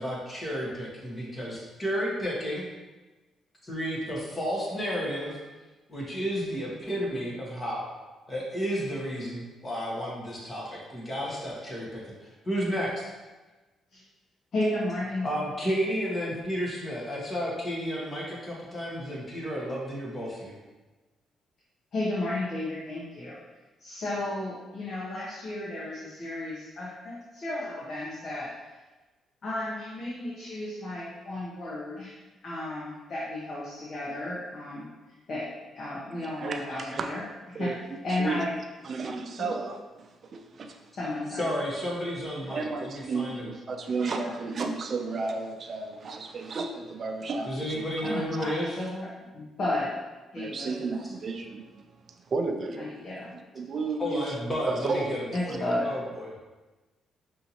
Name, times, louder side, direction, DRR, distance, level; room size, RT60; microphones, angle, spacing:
voice 1, 0.0-2.7 3.6-5.4 5.9-7.9 8.3-12.9 15.2-20.6 41.3-43.4 47.4-48.7 54.0-55.2 55.5-56.5, equal, 25° left, -4 dB, 1.2 m, -32 dB
voice 2, 14.5-15.3 21.9-23.4 23.8-28.5 29.4-34.9 35.3-35.5 35.7-37.2 37.6-37.7 38.0-38.5 39.4-39.5 40.9-41.5 42.4-42.5 48.0-49.1 49.3-49.9 50.3-50.7 52.8-53.3 55.3-55.9, left 1 dB, 55° left, -7 dB, 0.9 m, -33 dB
voice 3, 36.2-37.1 37.5-37.8 38.2-38.4 38.8-40.8 42.5-47.8 50.4-51.8 52.3-52.9 53.3-54.3 54.7-55.2, right 3 dB, 50° right, 4 dB, 0.5 m, -33 dB
5.5 x 2.7 x 2.9 m, 1.2 s
cardioid pair, 90°, 0 cm